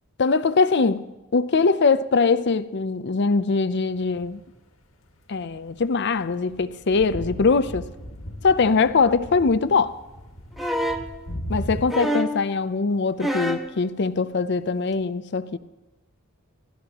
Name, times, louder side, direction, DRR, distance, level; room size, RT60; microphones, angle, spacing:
voice 1, 0.2-1.0 1.3-4.4 5.3-7.9 8.4-9.9 11.5-15.6, left 4 dB, 55° left, 0.6 m, -22 dB
sound 1, 4.0-4.6 5.5-11.9, equal, 75° left, 1.8 m, -37 dB
sound 2, 10.6-11.1 11.9-12.4 13.2-13.7 14.9-15.0, equal, ahead, 1.1 m, -26 dB
28.0 x 13.0 x 3.0 m
head